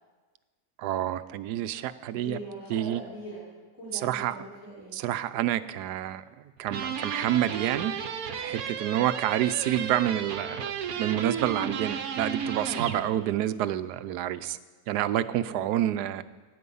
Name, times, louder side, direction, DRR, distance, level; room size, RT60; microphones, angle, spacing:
voice 1, 0.8-2.4 2.7-3.0 4.0-4.3 4.9-6.2 6.6-7.9 8.4-10.7 11.0-14.6 14.9-16.2, right 12 dB, 90° right, 13 dB, 1.2 m, -28 dB
voice 2, 2.1-3.5 3.7-5.0 12.8-13.2 15.4-15.8, right 1 dB, 20° right, -7 dB, 3.7 m, -42 dB
sound 1, 6.7-13.0, right 6 dB, 65° right, 1.3 m, -33 dB
18.0 x 8.7 x 5.5 m, 1.3 s
omnidirectional pair, 1.7 m